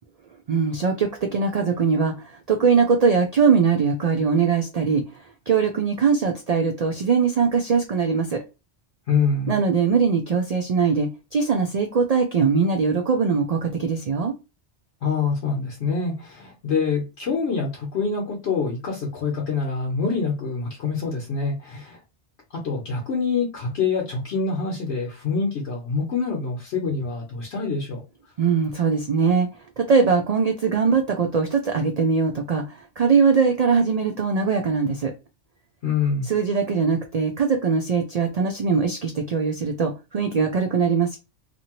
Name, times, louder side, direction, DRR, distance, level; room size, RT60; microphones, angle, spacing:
voice 1, 0.5-8.4 9.5-14.3 28.4-35.1 36.3-41.2, right 5 dB, 80° right, 0.3 m, -21 dB
voice 2, 9.1-9.6 15.0-22.0 22.6-28.0 35.8-36.3, left 5 dB, 65° left, 1.0 m, -25 dB
2.7 x 2.5 x 2.9 m
omnidirectional pair, 1.2 m